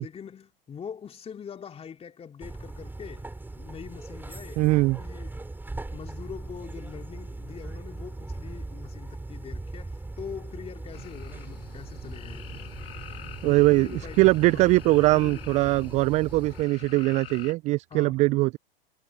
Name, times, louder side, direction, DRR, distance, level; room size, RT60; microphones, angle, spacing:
voice 1, 0.0-3.3 3.5-5.5 5.9-12.7 13.4-15.9 17.9-18.2, left 7 dB, 20° left, 3.4 m, -43 dB
sound 1, 2.4-16.6, right 2 dB, 5° right, 5.7 m, -40 dB
voice 2, 4.6-5.0 13.4-18.6, right 21 dB, 25° right, 0.4 m, -21 dB
sound 2, 10.9-17.5, left 9 dB, 70° left, 2.8 m, -46 dB
hypercardioid pair, 105°, 30 cm